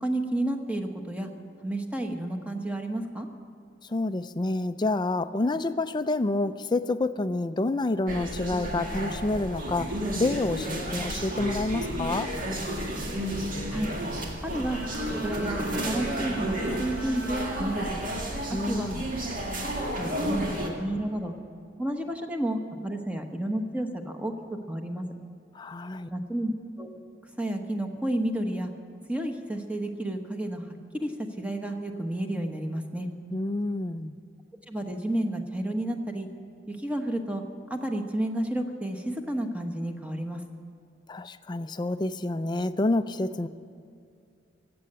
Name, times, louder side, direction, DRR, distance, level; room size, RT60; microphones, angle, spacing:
voice 1, 0.0-1.3 1.6-3.3 13.7-13.9 14.4-14.8 15.2-17.9 18.5-18.9 19.9-21.3 21.8-25.0 26.1-26.9 27.4-28.7 29.1-30.7 30.9-31.1 31.4-33.1 34.7-36.3 36.7-37.4 37.7-40.4, right 1 dB, 5° right, 4 dB, 1.0 m, -31 dB
voice 2, 3.9-12.3 18.5-19.1 25.5-26.1 33.3-34.2 41.1-43.5, left 2 dB, 25° left, 12 dB, 0.4 m, -28 dB
sound 1, 8.1-20.7, equal, 45° right, 2.0 m, -32 dB
Bowed string instrument, 14.6-18.8, right 3 dB, 65° right, 1.6 m, -40 dB
16.0 x 7.7 x 10.0 m, 2.3 s
head